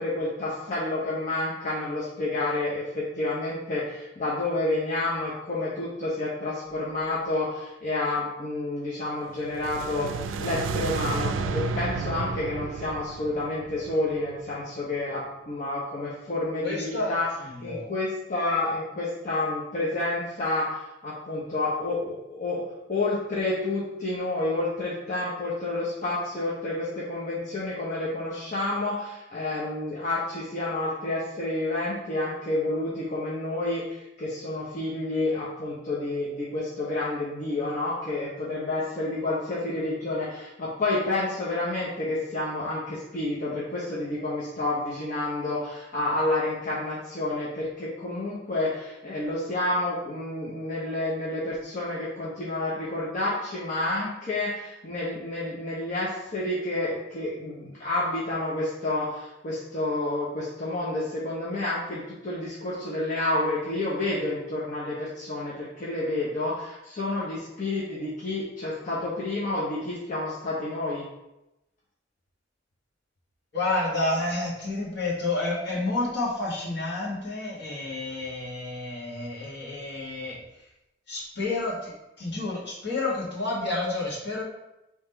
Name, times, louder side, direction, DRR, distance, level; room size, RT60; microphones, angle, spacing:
voice 1, 0.0-17.3 17.6-22.6 22.9-71.0, left 2 dB, 45° left, -7 dB, 0.8 m, -29 dB
sound 1, 9.4-14.6, right 4 dB, 80° right, 0.3 m, -32 dB
voice 2, 16.6-17.1 17.4-17.9 73.5-80.4 81.1-81.9 82.2-84.4, left 2 dB, 65° left, -6 dB, 1.5 m, -30 dB
3.6 x 3.1 x 4.4 m, 0.93 s
head